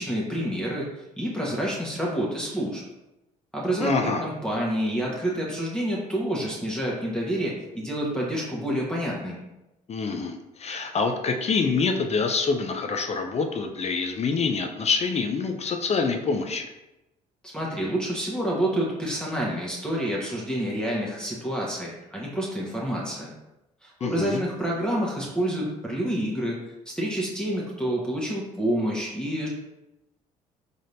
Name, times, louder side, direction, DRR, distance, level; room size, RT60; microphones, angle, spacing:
voice 1, 0.0-2.8 3.5-9.4 17.4-23.3 23.8-26.6 26.9-29.5, right 1 dB, 5° left, -5 dB, 1.1 m, -28 dB
voice 2, 3.8-4.2 9.9-16.7 24.0-24.4, left 4 dB, 35° left, 5 dB, 0.5 m, -26 dB
3.9 x 3.4 x 2.5 m, 0.95 s
hypercardioid pair, 55°, 19 cm